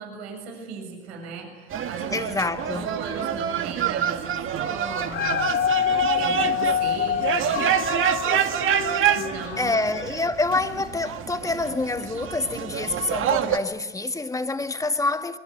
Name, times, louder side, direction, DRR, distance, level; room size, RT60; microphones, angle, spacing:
voice 1, 0.0-2.3 2.7-5.5 6.2-7.7 9.2-9.8, right 5 dB, 75° right, 7.0 m, -37 dB
sound 1, 1.7-13.6, right 9 dB, 40° right, 2.0 m, -27 dB
voice 2, 2.1-3.0 9.6-15.4, left 3 dB, 10° left, 1.6 m, -27 dB
Dog, 4.9-10.2 10.8-10.9, left 8 dB, 35° left, 2.0 m, -26 dB
25.5 x 22.5 x 8.2 m
hypercardioid pair, 90°, 33 cm